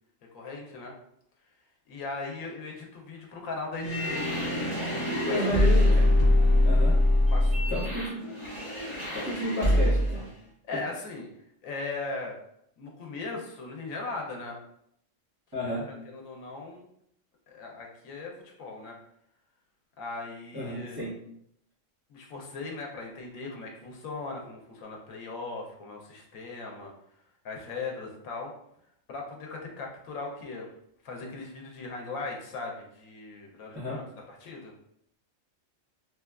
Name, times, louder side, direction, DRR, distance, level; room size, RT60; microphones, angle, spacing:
voice 1, 0.3-0.9 1.9-4.3 4.7-5.7 7.3-8.3 10.7-11.3 11.6-12.3 12.8-14.6 15.5-16.9 17.5-18.9 20.0-21.0 22.1-26.9 27.4-28.5 29.1-30.7 31.0-34.7, left 3 dB, 90° left, 0 dB, 1.0 m, -39 dB
sound 1, 3.8-10.2, left 1 dB, 25° left, 0.9 m, -24 dB
voice 2, 5.2-6.1 6.6-6.9 7.7-8.2 9.1-10.2 15.5-15.9 20.5-21.1 33.7-34.0, equal, 20° right, -10 dB, 0.8 m, -31 dB
3.1 x 2.2 x 2.3 m, 0.73 s
omnidirectional pair, 1.4 m